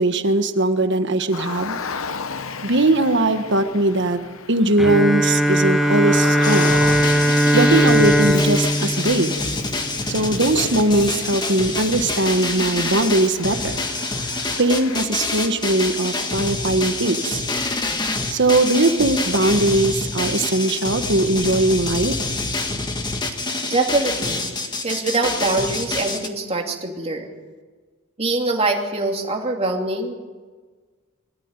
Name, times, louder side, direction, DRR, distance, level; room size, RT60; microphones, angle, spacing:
voice 1, 0.0-1.8 2.6-4.2 4.5-6.7 7.5-9.3 10.1-13.8 14.6-17.4 18.3-22.1, right 2 dB, 60° right, 8 dB, 1.5 m, -20 dB
Car, 1.3-15.0, left 5 dB, 75° left, 1.0 m, -34 dB
Bowed string instrument, 4.8-10.3, equal, ahead, 1.1 m, -19 dB
sound 1, 6.4-26.3, left 3 dB, 20° left, 1.7 m, -26 dB
voice 2, 23.7-24.5 24.8-27.3 28.2-30.1, right 2 dB, 30° right, 1 dB, 2.8 m, -23 dB
23.0 x 14.0 x 9.8 m, 1.5 s
head